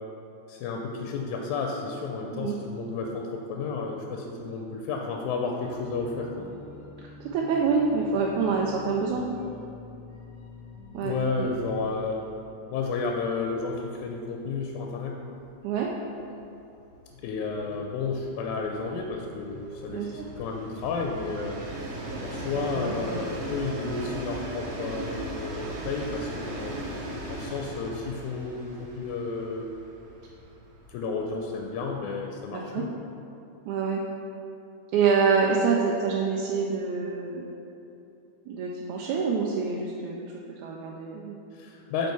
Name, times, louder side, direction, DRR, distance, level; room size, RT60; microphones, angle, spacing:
voice 1, 0.5-6.7 11.0-12.3 12.7-15.2 17.2-21.6 22.2-26.8 27.3-29.7 30.9-32.9 41.5-42.1, left 4 dB, 90° left, 1 dB, 2.1 m, -32 dB
sound 1, 5.6-12.5, left 2 dB, 55° left, 1.5 m, -46 dB
voice 2, 7.2-9.2 10.9-11.5 15.6-15.9 19.9-20.3 22.6-23.3 32.5-32.8 33.7-34.0 34.9-37.5 38.5-41.4, right 5 dB, 85° right, -2 dB, 2.0 m, -27 dB
Train, 13.9-14.0 14.3-14.4 14.7-32.1, right 1 dB, 65° right, 1.9 m, -38 dB
8.1 x 4.4 x 4.6 m, 2.9 s
omnidirectional pair, 3.4 m